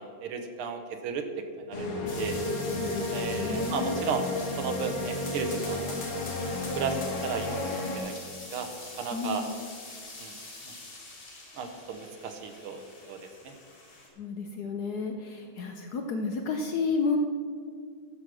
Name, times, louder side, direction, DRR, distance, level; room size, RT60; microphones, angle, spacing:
voice 1, 0.0-1.9 2.2-2.4 3.1-4.3 4.6-6.0 6.8-8.2 8.5-8.7 9.0-9.4 10.2-10.3 11.6-12.8 13.1-13.5, right 5 dB, 80° right, 6 dB, 1.9 m, -34 dB
sound 1, 1.7-8.0, left 2 dB, 85° left, 2.9 m, -32 dB
sound 2, 2.1-14.1, left 2 dB, 45° left, 2.8 m, -45 dB
voice 2, 2.8-3.9 9.1-9.5 14.2-17.2, left 4 dB, 65° left, 4 dB, 1.0 m, -31 dB
13.0 x 6.3 x 6.2 m, 2.1 s
omnidirectional pair, 2.3 m